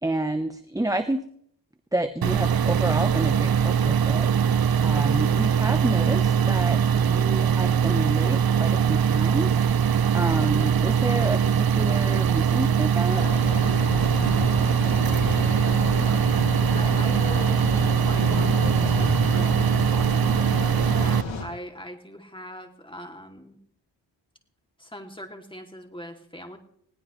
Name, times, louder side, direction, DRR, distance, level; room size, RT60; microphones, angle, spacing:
voice 1, 0.0-1.2 1.9-4.5 4.8-13.3, right 1 dB, 10° right, 9 dB, 0.9 m, -29 dB
sound 1, 2.2-21.2, right 7 dB, 55° right, 0.7 m, -22 dB
sound 2, 13.1-21.4, left 3 dB, 90° left, 2.6 m, -31 dB
voice 2, 15.9-23.6 24.8-26.6, equal, 10° left, 4 dB, 2.7 m, -41 dB
20.5 x 17.0 x 3.2 m, 0.67 s
cardioid pair, 60°, 45 cm